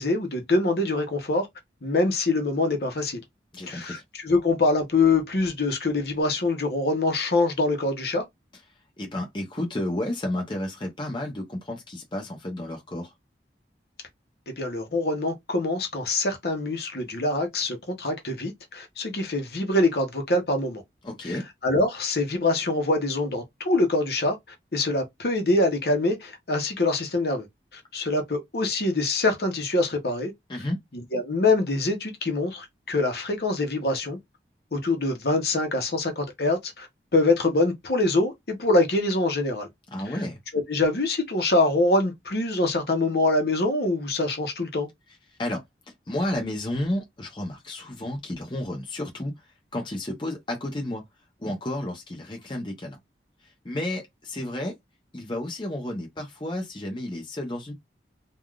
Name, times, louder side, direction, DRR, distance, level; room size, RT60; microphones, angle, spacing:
voice 1, 0.0-1.5 1.8-3.2 3.7-8.2 14.5-20.8 21.2-21.4 21.6-24.4 24.7-27.5 27.7-30.3 30.9-34.2 34.7-36.9 37.1-39.7 40.1-40.2 40.5-44.9, left 2 dB, 65° left, 0.9 m, -24 dB
voice 2, 3.5-4.0 9.0-13.1 21.0-21.4 30.5-30.8 39.9-40.4 45.4-45.6 46.1-49.3 49.7-51.0 51.4-53.0 53.6-54.7 55.1-57.7, left 1 dB, 25° left, 0.7 m, -31 dB
3.4 x 2.4 x 2.3 m
head